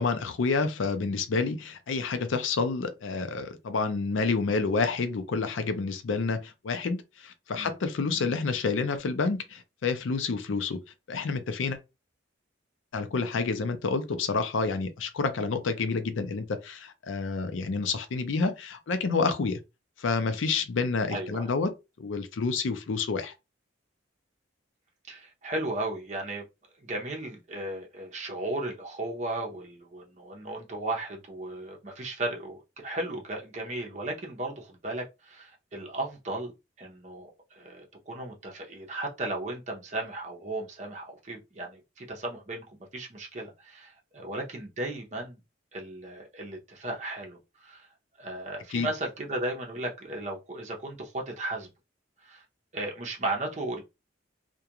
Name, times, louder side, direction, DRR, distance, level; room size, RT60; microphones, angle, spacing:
voice 1, 0.0-10.8 11.1-11.8 12.9-19.6 20.0-23.3 48.7-48.9, left 4 dB, 85° left, 0.5 m, -29 dB
voice 2, 21.1-21.5 25.1-26.4 26.8-36.5 36.8-45.4 45.7-47.9 48.2-51.7 52.2-52.4 52.7-53.8, right 2 dB, 35° right, 0.7 m, -35 dB
2.3 x 2.2 x 2.8 m
head